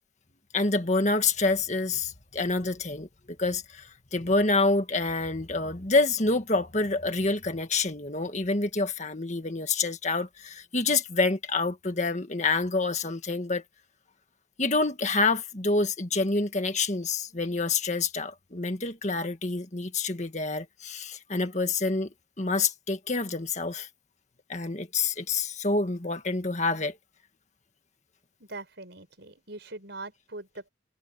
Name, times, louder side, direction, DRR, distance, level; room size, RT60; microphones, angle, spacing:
voice 1, 0.5-3.1 3.4-13.6 14.6-22.1 22.4-23.9 24.5-27.0, left 3 dB, 40° left, 1.8 m, -27 dB
voice 2, 28.4-30.7, right 2 dB, 65° right, 5.6 m, -42 dB
head